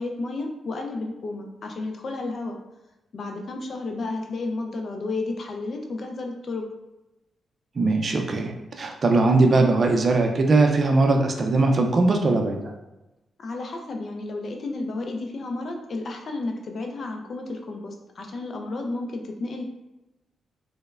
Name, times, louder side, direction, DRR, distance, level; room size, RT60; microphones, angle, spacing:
voice 1, 0.0-2.6 3.1-6.7 13.4-19.6, left 2 dB, 55° left, 3 dB, 0.4 m, -32 dB
voice 2, 7.8-12.7, right 3 dB, 50° right, 3 dB, 0.4 m, -20 dB
3.0 x 2.0 x 2.3 m, 0.99 s
cardioid pair, 60°, 0 cm